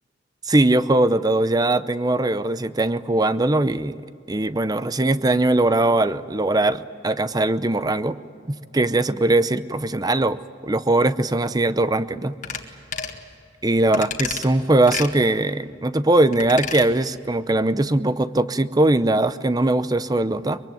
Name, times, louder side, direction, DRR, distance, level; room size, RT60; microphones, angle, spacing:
voice 1, 0.5-4.0 4.3-8.2 8.5-12.4 13.6-20.6, right 2 dB, 20° right, 14 dB, 0.6 m, -20 dB
sound 1, 12.4-12.6 12.9-13.2 13.9-14.5 14.9-15.1 16.3-16.9 17.2-17.3, left 6 dB, 40° left, 1.8 m, -30 dB
23.5 x 23.0 x 9.3 m, 2.3 s
head